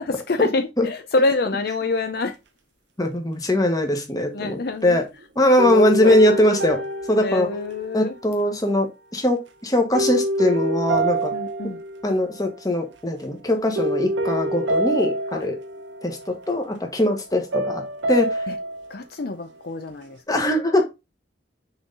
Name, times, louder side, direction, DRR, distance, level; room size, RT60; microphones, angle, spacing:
voice 1, 0.0-2.3 4.3-5.0 5.7-6.2 7.2-8.1 11.3-11.8 15.3-15.5 18.5-18.6 18.9-20.2, left 3 dB, 55° left, 0.6 m, -26 dB
voice 2, 3.0-5.0 5.4-6.8 7.1-7.5 7.9-11.3 12.0-15.6 16.0-18.4 20.3-20.8, left 1 dB, 20° left, 1.3 m, -21 dB
sound 1, 4.5-5.1 5.6-8.2 9.9-12.5 12.8-13.2 13.7-16.5 17.5-19.0, right 1 dB, 80° right, 0.8 m, -26 dB
6.3 x 3.9 x 3.8 m
head